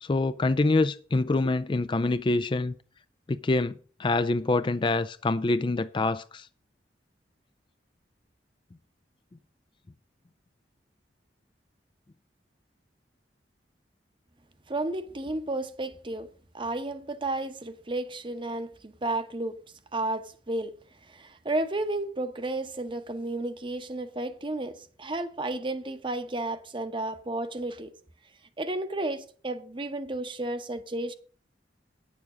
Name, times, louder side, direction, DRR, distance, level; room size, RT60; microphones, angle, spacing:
voice 1, 0.0-2.7 3.3-3.7 4.0-6.5, left 2 dB, 30° left, 0.4 m, -25 dB
voice 2, 14.7-19.6 19.9-20.7 21.0-27.9 28.6-31.1, right 2 dB, 30° right, 0.9 m, -32 dB
9.8 x 7.0 x 6.1 m
head